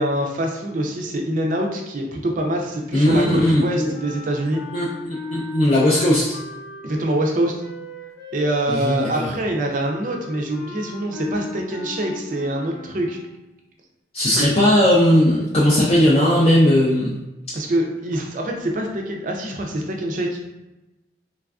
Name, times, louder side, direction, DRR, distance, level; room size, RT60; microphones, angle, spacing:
voice 1, 0.0-4.6 6.8-7.5 8.3-13.2 14.3-14.5 17.5-20.4, right 1 dB, 45° right, 1 dB, 0.4 m, -24 dB
voice 2, 2.9-3.6 4.7-6.4 8.7-9.3 14.1-17.1, left 1 dB, 30° left, -6 dB, 0.3 m, -17 dB
sound 1, 3.9-13.4, left 1 dB, 60° left, 0.9 m, -38 dB
3.2 x 2.4 x 2.3 m, 1.0 s
head